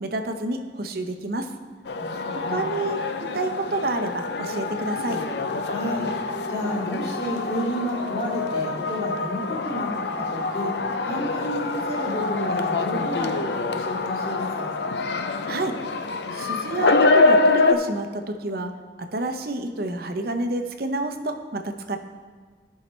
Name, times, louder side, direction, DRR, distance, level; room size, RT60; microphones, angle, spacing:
voice 1, 0.0-1.5 2.3-5.2 15.5-15.8 16.3-18.7 19.0-22.0, right 2 dB, 55° right, 6 dB, 0.7 m, -29 dB
sound 1, 1.9-17.7, left 3 dB, 65° left, 0.5 m, -25 dB
voice 2, 1.9-2.7 5.6-6.1 6.5-14.7, equal, 35° left, -9 dB, 2.6 m, -31 dB
16.0 x 5.7 x 3.2 m, 1.5 s
head